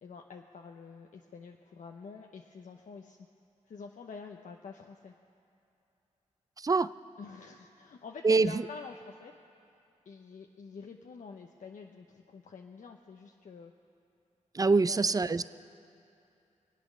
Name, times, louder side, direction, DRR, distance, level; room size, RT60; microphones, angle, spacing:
voice 1, 0.0-3.2 3.7-5.1 7.2-9.3 10.1-13.7 14.7-15.2, left 5 dB, 75° left, 3 dB, 0.7 m, -47 dB
voice 2, 6.6-6.9 8.2-8.7 14.5-15.5, right 4 dB, 25° right, 15 dB, 0.4 m, -25 dB
24.0 x 8.7 x 6.4 m, 2.7 s
cardioid pair, 55°, 13 cm